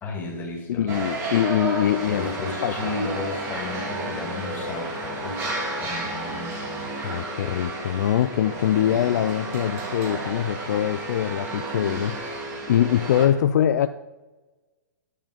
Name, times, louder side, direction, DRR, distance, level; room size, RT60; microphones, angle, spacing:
voice 1, 0.0-0.9 2.1-5.5 5.8-6.9, left 3 dB, 20° left, 0 dB, 2.3 m, -33 dB
voice 2, 0.7-2.8 7.0-12.4 12.7-13.9, left 10 dB, 60° left, 11 dB, 0.4 m, -23 dB
sound 1, 0.9-13.3, right 2 dB, 25° right, 2.2 m, -32 dB
10.5 x 5.0 x 5.1 m, 1.2 s
hypercardioid pair, 135°, 10 cm